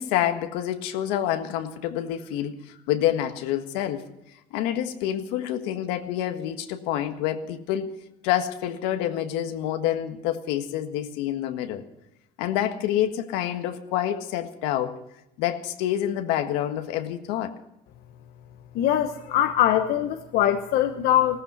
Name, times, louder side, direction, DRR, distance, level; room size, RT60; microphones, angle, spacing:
voice 1, 0.0-4.0 4.5-7.9 8.2-11.8 12.4-15.0 15.4-17.5, left 11 dB, 85° left, 7 dB, 1.6 m, -27 dB
voice 2, 18.7-21.4, left 11 dB, 65° left, 7 dB, 1.0 m, -22 dB
17.5 x 14.5 x 5.7 m, 0.86 s
cardioid pair, 110°, 17 cm